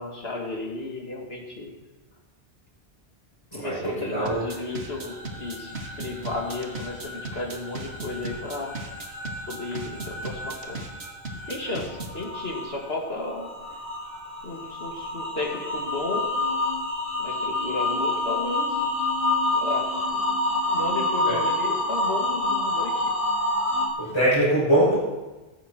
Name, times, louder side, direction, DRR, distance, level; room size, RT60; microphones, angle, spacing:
voice 1, 0.0-1.7 3.5-8.7 9.4-10.8 11.5-13.5 14.4-16.3 17.2-18.8 19.5-20.4 20.7-23.1, left 2 dB, 70° left, -1 dB, 3.0 m, -33 dB
voice 2, 3.5-4.4 21.3-21.4 24.0-25.0, right 1 dB, 25° left, -11 dB, 7.4 m, -22 dB
sound 1, 4.1-12.7 13.0-23.9, left 2 dB, 50° right, 4.7 m, -29 dB
sound 2, 4.3-12.2, right 2 dB, 80° right, 1.9 m, -37 dB
16.5 x 14.5 x 4.8 m, 1.1 s
omnidirectional pair, 1.1 m